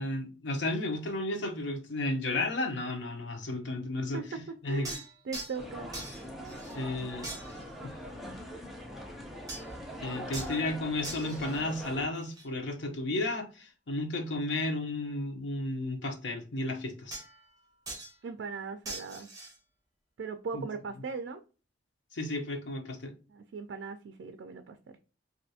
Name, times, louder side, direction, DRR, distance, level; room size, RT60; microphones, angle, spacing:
voice 1, 0.0-4.9 6.7-7.3 7.8-7.9 10.0-17.2 20.5-20.7 22.1-23.1, left 2 dB, 70° left, 0.8 m, -33 dB
voice 2, 4.1-5.9 18.2-19.3 20.2-21.4 23.3-24.8, right 5 dB, 70° right, 0.4 m, -39 dB
sound 1, 4.8-5.7 5.9-6.9 7.2-7.8 9.5-9.8 10.3-10.6 11.0-12.5 17.1-17.6 17.9-18.2 18.8-19.6, right 2 dB, 20° right, 1.0 m, -43 dB
sound 2, 5.5-12.1, equal, ahead, 0.5 m, -42 dB
3.2 x 2.6 x 2.7 m
head